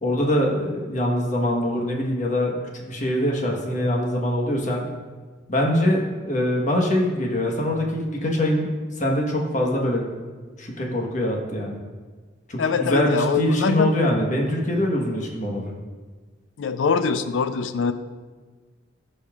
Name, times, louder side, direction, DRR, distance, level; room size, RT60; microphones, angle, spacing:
voice 1, 0.0-4.9 5.5-8.7 8.9-10.0 10.6-11.8 12.5-15.7, left 1 dB, 40° left, 0 dB, 1.2 m, -23 dB
voice 2, 12.6-13.9 16.6-17.9, left 5 dB, 85° left, 11 dB, 0.4 m, -23 dB
14.0 x 5.4 x 2.4 m, 1.4 s
head